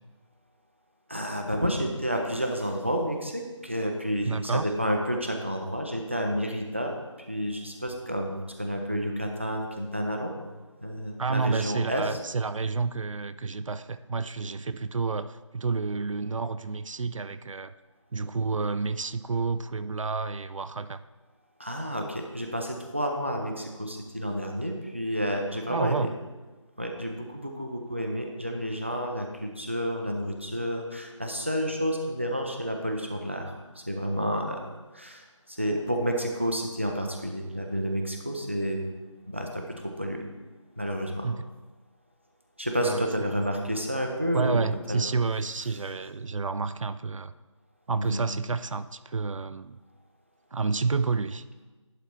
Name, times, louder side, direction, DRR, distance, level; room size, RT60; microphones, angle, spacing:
voice 1, 1.1-10.3 10.8-12.2 21.6-26.1 26.8-34.6 34.9-38.8 39.3-39.6 40.0-40.2 40.8-41.3 42.6-44.6 44.9-45.0 48.0-48.2, equal, 25° right, 2 dB, 0.5 m, -30 dB
voice 2, 4.2-4.7 11.2-17.7 18.1-21.0 25.7-26.1 41.2-41.5 42.8-43.5 44.3-47.3 47.9-49.8 50.5-51.4, right 4 dB, 75° right, 13 dB, 0.4 m, -30 dB
11.0 x 4.0 x 4.5 m, 1.2 s
figure-of-eight pair, 175°, 17 cm